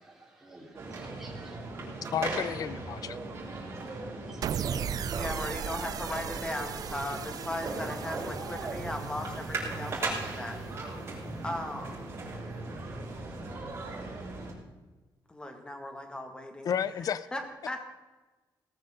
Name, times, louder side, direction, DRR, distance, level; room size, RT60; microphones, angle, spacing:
voice 1, 0.0-1.6 4.3-5.3, right 2 dB, 5° right, -5 dB, 4.1 m, -54 dB
sound 1, 0.7-14.5, right 3 dB, 35° right, 4.7 m, -38 dB
voice 2, 2.1-3.2 16.6-17.3, left 8 dB, 50° left, 16 dB, 0.6 m, -31 dB
sound 2, 4.4-10.8, right 9 dB, 50° right, 0.4 m, -38 dB
voice 3, 5.1-10.6 10.9-11.1 11.4-12.1 15.3-16.7 17.1-17.8, left 1 dB, 10° left, 4 dB, 2.0 m, -38 dB
18.5 x 14.0 x 3.8 m, 1.2 s
wide cardioid pair, 180°, 8 cm